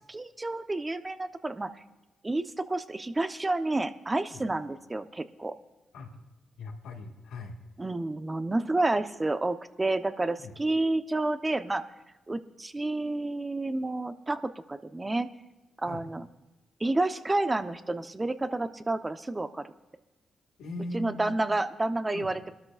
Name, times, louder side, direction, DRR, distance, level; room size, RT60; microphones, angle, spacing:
voice 1, 0.1-1.7 2.2-5.5 7.8-11.8 12.3-15.3 15.8-16.2 16.8-19.7 20.9-22.5, right 2 dB, 25° right, 10 dB, 0.8 m, -30 dB
voice 2, 6.6-7.6 10.4-10.5 15.8-16.0 20.6-21.6 22.1-22.3, left 2 dB, 80° left, 1 dB, 1.7 m, -40 dB
22.5 x 13.0 x 2.5 m, 1.0 s
supercardioid pair, 45°, 0 cm